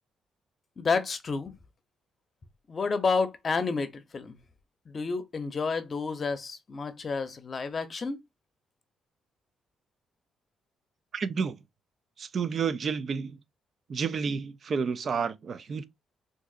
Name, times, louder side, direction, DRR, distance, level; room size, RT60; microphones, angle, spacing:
voice 1, 0.8-1.5 2.7-4.4 4.9-8.2, left 4 dB, 40° left, 0.7 m, -30 dB
voice 2, 11.1-11.6 12.2-13.4 13.9-15.8, right 6 dB, 50° right, 0.4 m, -30 dB
3.8 x 2.6 x 2.4 m
cardioid pair, 90°, 0 cm